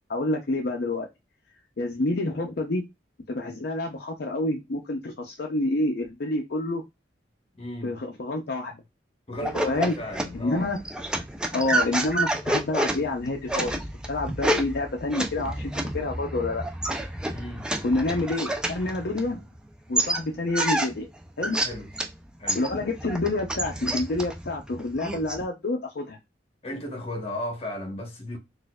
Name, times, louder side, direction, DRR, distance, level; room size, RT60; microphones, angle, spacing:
voice 1, 0.1-1.1 1.8-2.8 3.3-6.8 7.8-8.7 9.7-9.9 10.3-10.8 11.5-16.6 17.8-19.4 19.9-21.1 21.4-21.6 22.5-26.2, left 2 dB, 55° left, 0.5 m, -28 dB
voice 2, 7.5-8.0 9.3-10.7 17.3-17.7 21.5-21.9 22.4-22.7 26.6-28.4, left 1 dB, 30° left, 0.9 m, -35 dB
sound 1, 9.4-19.6 19.9-22.1 22.5-25.4, right 1 dB, 5° right, 0.4 m, -29 dB
4.2 x 2.5 x 2.3 m
head